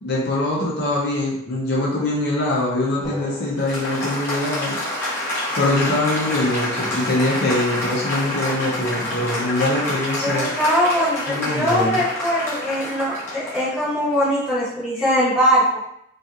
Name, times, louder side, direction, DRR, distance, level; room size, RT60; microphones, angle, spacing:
voice 1, 0.0-4.8 5.6-10.5 11.3-12.0, left 2 dB, 50° left, -5 dB, 0.6 m, -23 dB
Applause, 3.0-14.9, left 1 dB, 15° left, 0.7 m, -28 dB
voice 2, 10.2-15.6, equal, 5° right, -10 dB, 0.9 m, -21 dB
2.8 x 2.3 x 2.4 m, 0.75 s
head